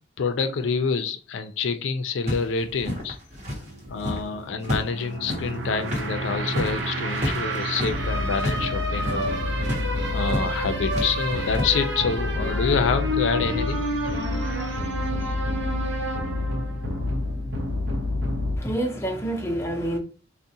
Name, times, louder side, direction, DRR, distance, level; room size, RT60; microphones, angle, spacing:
voice 1, 0.2-3.2 3.9-9.4 10.1-13.8 14.2-14.7, left 5 dB, 85° left, 0.4 m, -27 dB
footsteps pavement street, 2.3-4.3 4.6-8.6 8.9-9.3 9.6-9.8 10.3-10.5 10.9-11.6, left 1 dB, 40° right, 0.8 m, -31 dB
sound 1, 3.4-18.6, left 1 dB, 75° right, 0.7 m, -28 dB
voice 2, 18.6-20.0, right 1 dB, 15° left, 0.5 m, -27 dB
3.6 x 2.1 x 2.7 m
head